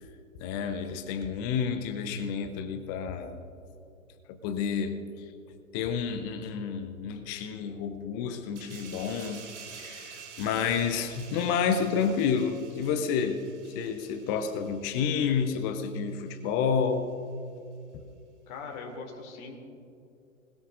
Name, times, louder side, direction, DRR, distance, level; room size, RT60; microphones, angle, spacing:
voice 1, 0.4-3.4 4.3-5.0 5.7-9.4 9.7-13.5 13.7-17.1, left 6 dB, 15° left, 8 dB, 0.5 m, -30 dB
sound 1, 8.5-15.7 16.1-16.3, right 6 dB, 55° right, 3.0 m, -49 dB
voice 2, 18.5-19.6, left 4 dB, 35° left, 1 dB, 2.7 m, -40 dB
25.5 x 20.5 x 2.5 m, 2.6 s
figure-of-eight pair, 120°, 41 cm